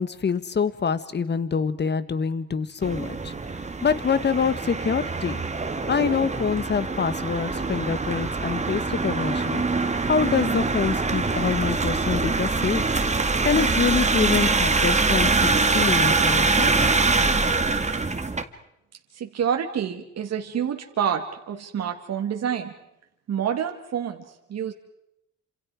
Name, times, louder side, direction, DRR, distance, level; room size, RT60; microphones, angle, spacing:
voice 1, 0.0-5.4 5.9-9.6 10.0-12.8 13.4-16.7 17.2-17.3, left 6 dB, 35° left, 14 dB, 1.4 m, -26 dB
sound 1, 2.8-18.4, right 3 dB, 25° right, 1.8 m, -24 dB
voice 2, 19.1-22.7 23.3-24.2 24.5-24.7, right 8 dB, 60° right, 4 dB, 2.0 m, -27 dB
28.0 x 27.0 x 4.8 m, 0.81 s
cardioid pair, 90°, 30 cm